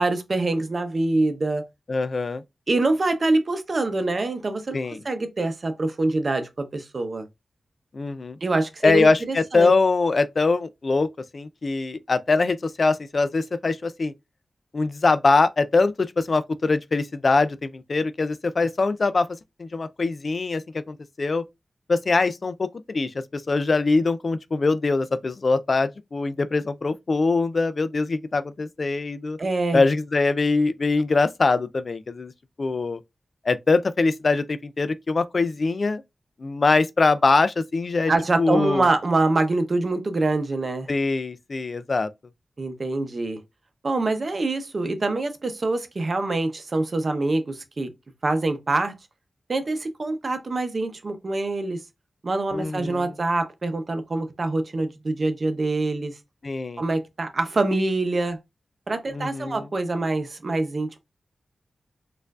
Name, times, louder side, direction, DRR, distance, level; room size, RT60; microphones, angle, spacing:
voice 1, 0.0-1.6 2.7-7.3 8.4-9.7 29.4-29.8 38.1-40.9 42.6-43.4 43.8-47.9 48.2-48.9 49.5-51.8 52.2-56.2 56.8-58.4 58.9-61.0, right 2 dB, 55° right, 0.7 m, -25 dB
voice 2, 1.9-2.4 4.7-5.0 7.9-8.4 8.8-11.1 11.3-14.1 14.7-19.3 19.6-21.4 21.9-29.4 29.7-32.3 32.6-33.0 33.5-36.0 36.4-38.1 38.4-38.9 40.9-42.1 52.5-53.1 56.4-56.8 59.1-59.6, left 3 dB, 55° left, 0.3 m, -23 dB
4.3 x 2.5 x 2.3 m
cardioid pair, 55°, 0 cm